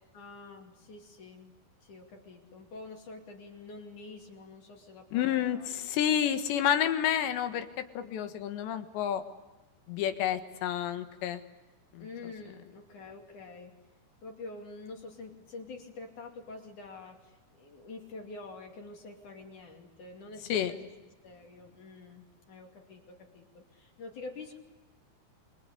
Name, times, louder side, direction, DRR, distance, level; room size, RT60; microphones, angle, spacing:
voice 1, 0.1-5.7 6.4-6.5 8.0-8.3 12.0-13.7 14.2-20.9 21.2-24.6, left 3 dB, 50° left, 2 dB, 3.8 m, -47 dB
voice 2, 5.1-7.7 8.0-9.2 9.9-11.4 11.9-12.1 20.5-20.7, left 10 dB, 80° left, 8 dB, 3.7 m, -29 dB
28.0 x 23.0 x 8.4 m, 1.1 s
omnidirectional pair, 5.0 m